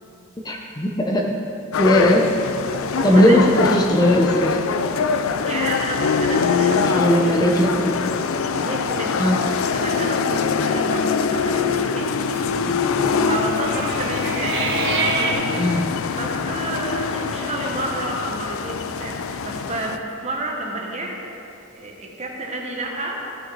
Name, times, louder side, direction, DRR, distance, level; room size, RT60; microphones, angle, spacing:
voice 1, 0.4-1.4 1.8-2.2 3.0-4.6 6.8-7.9 9.2-9.4 12.5-12.8 15.5-15.8, left 1 dB, 20° left, 0 dB, 0.6 m, -18 dB
sound 1, 1.7-20.0, left 5 dB, 60° left, 0.4 m, -23 dB
voice 2, 2.9-3.4 5.4-7.7 8.5-9.4 9.7-12.1 13.3-15.6 16.1-21.2 21.7-23.2, right 2 dB, 30° right, 0 dB, 1.1 m, -30 dB
sound 2, 6.6-8.3 8.7-8.8 9.1-9.5 9.9-10.2 11.1-15.3, right 4 dB, 50° right, 1.0 m, -30 dB
14.5 x 6.0 x 4.0 m, 2.9 s
head